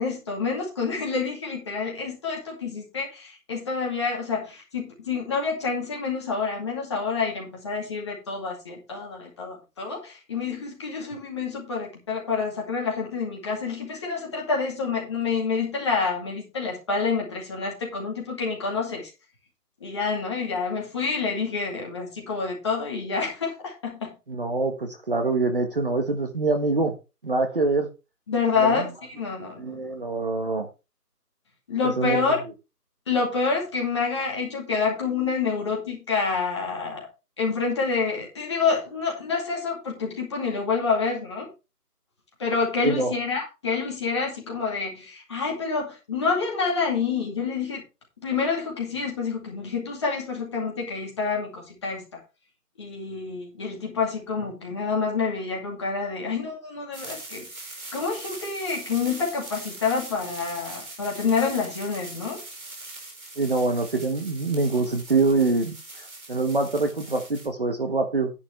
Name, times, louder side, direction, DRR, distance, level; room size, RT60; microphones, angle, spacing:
voice 1, 0.0-19.1 19.8-24.1 28.3-29.8 31.7-32.4 33.1-37.1 37.4-41.5 42.4-47.8 48.2-52.2 52.8-62.4, left 5 dB, 15° left, -1 dB, 2.2 m, -28 dB
voice 2, 24.3-26.9 27.2-27.9 28.6-28.8 29.6-30.7 31.8-32.2 42.8-43.1 63.4-65.7 66.3-68.3, right 3 dB, 35° right, 5 dB, 1.3 m, -24 dB
sound 1, 56.9-67.5, right 2 dB, 60° right, 5.1 m, -41 dB
10.5 x 9.3 x 3.3 m, 0.28 s
figure-of-eight pair, 165°, 47 cm